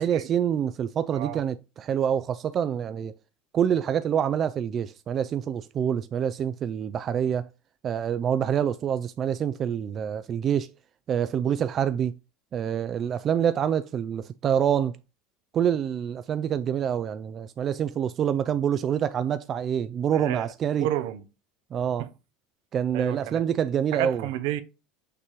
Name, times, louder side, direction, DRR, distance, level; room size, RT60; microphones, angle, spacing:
voice 1, 0.0-3.1 3.5-7.5 7.8-10.7 11.1-12.1 12.5-15.0 15.5-20.9 21.7-22.1 22.7-24.3, right 9 dB, 40° right, 0.3 m, -26 dB
voice 2, 20.1-20.5 20.8-21.2 22.0-22.1 22.9-23.4 23.9-24.6, right 12 dB, 75° right, 0.7 m, -31 dB
6.7 x 2.9 x 4.9 m
hypercardioid pair, 85°, 0 cm